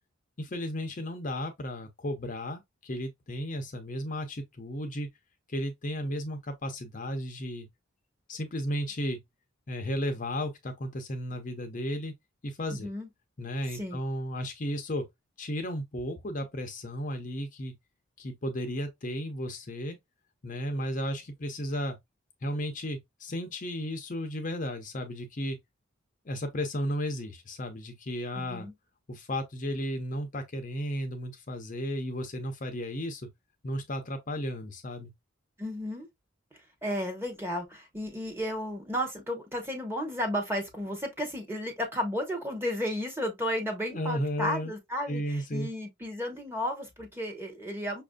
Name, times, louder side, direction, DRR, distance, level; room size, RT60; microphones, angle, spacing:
voice 1, 0.4-5.1 5.5-7.7 8.3-9.2 9.7-12.1 12.4-12.9 13.4-15.1 15.4-17.7 18.2-20.0 20.4-22.0 22.4-25.6 26.3-28.7 29.1-33.3 33.6-35.1 43.9-44.7 45.1-45.7, equal, 40° left, 0.5 m, -34 dB
voice 2, 12.7-13.1 13.7-14.0 28.3-28.7 35.6-36.1 36.8-48.0, equal, 10° right, 0.8 m, -33 dB
5.6 x 2.5 x 2.2 m
head